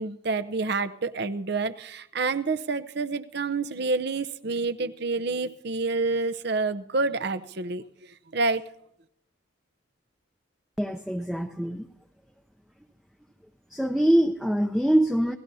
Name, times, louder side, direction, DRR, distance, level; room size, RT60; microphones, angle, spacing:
voice 1, 0.0-8.7, right 3 dB, 55° right, 12 dB, 0.7 m, -28 dB
voice 2, 10.8-11.9 13.7-15.4, right 1 dB, ahead, 5 dB, 0.6 m, -24 dB
28.0 x 18.0 x 2.8 m, 0.76 s
head